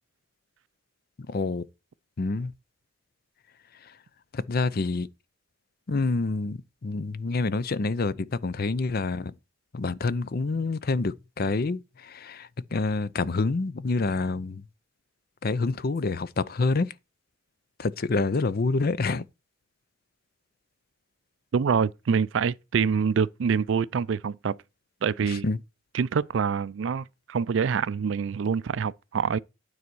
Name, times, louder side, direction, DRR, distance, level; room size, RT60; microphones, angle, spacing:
voice 1, 1.3-1.7 2.2-2.5 3.8-3.9 4.3-5.1 5.9-9.3 9.7-14.6 15.4-16.9 17.8-19.3 25.3-25.6, left 3 dB, 50° left, 0.6 m, -27 dB
voice 2, 21.5-24.6 25.0-25.4 25.9-29.4, right 6 dB, 65° right, 0.4 m, -26 dB
9.5 x 4.1 x 6.1 m
head